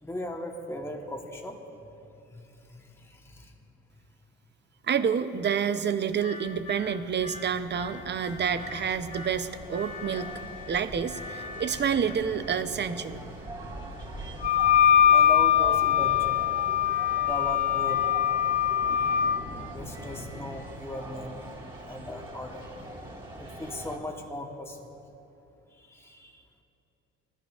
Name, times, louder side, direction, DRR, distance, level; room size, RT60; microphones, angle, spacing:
voice 1, 0.0-1.6 2.3-2.4 2.7-3.5 15.1-16.5 17.2-18.1 19.7-21.4 21.8-22.7 23.4-24.9 25.8-26.4, left 1 dB, 10° left, 2 dB, 1.2 m, -38 dB
voice 2, 4.8-10.3 10.7-13.2, right 7 dB, 35° right, 11 dB, 0.6 m, -28 dB
sound 1, 5.9-20.5, left 2 dB, 90° left, 2.2 m, -44 dB
sound 2, 7.2-24.0, right 2 dB, 15° right, 2.8 m, -43 dB
Wind instrument woodwind instrument, 14.4-19.4, left 10 dB, 25° left, 0.4 m, -22 dB
19.5 x 13.5 x 2.4 m, 2.8 s
supercardioid pair, 80°, 30 cm